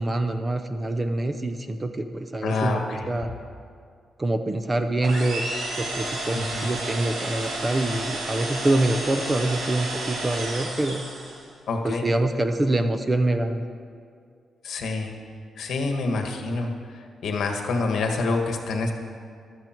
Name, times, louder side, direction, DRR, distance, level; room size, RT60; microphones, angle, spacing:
voice 1, 0.0-3.3 4.2-11.0 11.8-13.6, right 2 dB, 15° right, 8 dB, 0.5 m, -25 dB
voice 2, 2.4-3.1 6.3-6.7 11.7-12.0 14.6-15.1 15.6-16.7 17.2-18.9, left 3 dB, 60° left, 3 dB, 1.5 m, -26 dB
sound 1, 5.0-11.5, right 2 dB, 70° right, 2.4 m, -31 dB
15.0 x 12.5 x 4.5 m, 2.2 s
wide cardioid pair, 180°, 0 cm